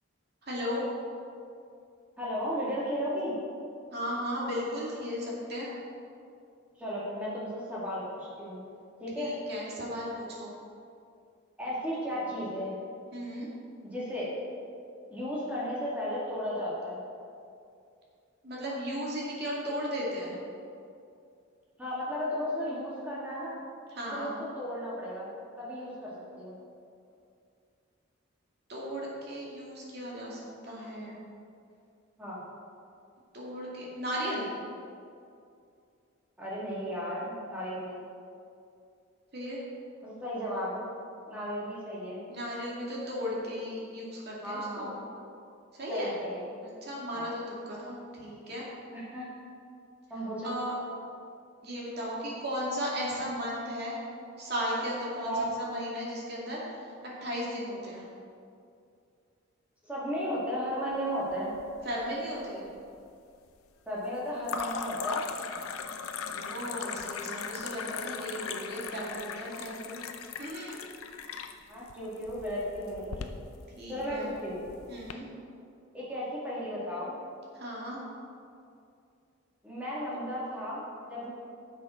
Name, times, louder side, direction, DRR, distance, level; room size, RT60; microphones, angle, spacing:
voice 1, 0.4-0.8 3.9-5.7 9.2-10.5 12.1-12.2 13.1-13.5 18.4-20.4 23.9-24.3 28.7-31.2 33.3-34.5 39.3-39.6 42.3-44.9 45.7-46.1 46.8-48.6 50.4-50.8 51.6-54.0 54.4-56.9 57.2-58.1 61.8-62.6 66.3-70.0 70.4-70.8 73.8-74.3 74.9-75.3 77.5-78.0, equal, 50° right, -5 dB, 2.2 m, -35 dB
voice 2, 2.2-3.3 6.8-8.6 9.0-9.3 11.6-12.8 13.8-14.3 15.1-17.0 21.8-23.6 24.1-25.3 25.6-26.6 32.2-32.4 36.4-38.1 40.0-40.8 41.3-42.2 44.4-45.0 45.9-46.4 47.1-47.2 48.9-49.3 50.1-50.6 55.2-55.4 59.8-61.5 63.9-65.2 71.7-73.3 73.9-74.6 75.9-77.2 79.6-81.3, equal, 5° right, -8 dB, 2.2 m, -34 dB
sound 1, 61.3-62.1 62.4-63.0 64.4-75.1, left 6 dB, 85° left, 0.5 m, -39 dB
10.0 x 7.5 x 3.8 m, 2.4 s
head